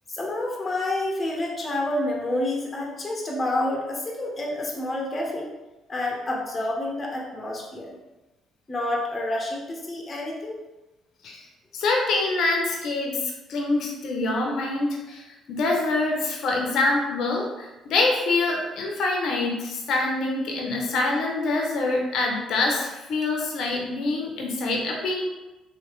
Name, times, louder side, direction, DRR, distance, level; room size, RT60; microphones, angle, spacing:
voice 1, 0.1-5.5 5.9-7.9 8.7-10.6, left 1 dB, 30° left, -1 dB, 0.9 m, -28 dB
voice 2, 11.7-13.2 13.5-25.3, left 2 dB, 70° left, 0 dB, 0.7 m, -25 dB
3.1 x 2.7 x 3.1 m, 1.0 s
supercardioid pair, 65°, 0 cm